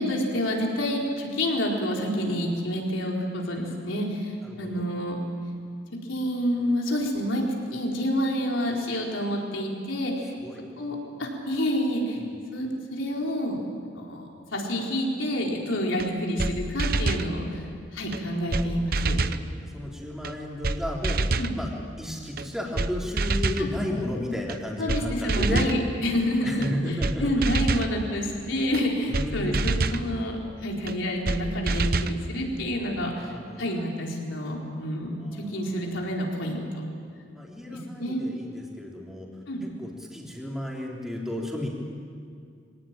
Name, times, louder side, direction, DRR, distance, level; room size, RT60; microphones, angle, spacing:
voice 1, 0.0-5.2 6.1-7.4 7.7-10.3 10.8-12.2 12.5-13.6 13.9-17.6 17.9-19.2 21.4-21.5 23.6-23.7 24.8-33.3 33.6-36.8 37.9-38.2 39.5-39.6, equal, 85° left, -1 dB, 4.5 m, -28 dB
voice 2, 4.4-4.9 10.4-10.6 18.2-19.2 19.6-21.2 21.5-21.7 22.0-25.6 26.4-27.9 29.1-29.9 33.1-33.8 35.2-35.5 36.1-36.2 37.3-39.3 39.8-41.7, left 1 dB, ahead, -2 dB, 3.4 m, -33 dB
sound 1, 16.0-16.1 16.4-16.5 16.8-17.3 18.1-18.2 18.5-18.7 18.9-19.4 20.2-20.3 20.6-20.8 21.0-21.5 22.4-22.5 22.8-22.9 23.2-23.7 24.5-24.6 24.9-25.0 25.3-25.8 26.6-26.7 27.0-27.1 27.4-27.9 28.7-28.8 29.1-29.3 29.5-30.0 30.9-31.0 31.3-31.4 31.7-32.2, right 3 dB, 50° right, 0.8 m, -26 dB
25.0 x 17.5 x 9.1 m, 2.3 s
head